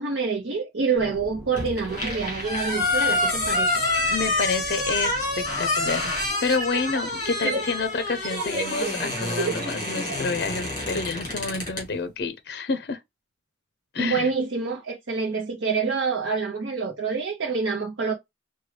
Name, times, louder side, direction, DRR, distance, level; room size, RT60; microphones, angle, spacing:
voice 1, 0.0-3.7 7.4-7.6 14.0-18.1, right 4 dB, 90° right, 0.7 m, -27 dB
sound 1, 1.0-6.3, equal, 5° right, 1.4 m, -43 dB
sound 2, 1.6-11.9, left 2 dB, 25° left, 2.1 m, -27 dB
voice 2, 4.1-5.3 5.6-6.1 6.4-13.0 13.9-14.3, left 4 dB, 60° left, 0.5 m, -28 dB
sound 3, 4.9-5.0 6.3-10.3, right 3 dB, 40° right, 1.3 m, -32 dB
4.7 x 2.2 x 3.2 m
head